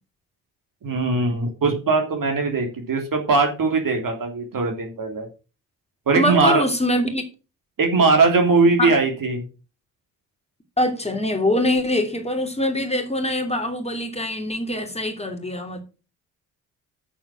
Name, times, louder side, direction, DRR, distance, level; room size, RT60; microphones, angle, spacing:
voice 1, 0.8-5.3 6.1-6.6 7.8-9.4, right 3 dB, 40° right, 3 dB, 3.2 m, -20 dB
voice 2, 6.1-7.2 8.8-8.9 10.8-15.8, left 1 dB, 15° left, 4 dB, 3.1 m, -23 dB
8.7 x 7.3 x 6.3 m, 0.33 s
figure-of-eight pair, 45°, 49 cm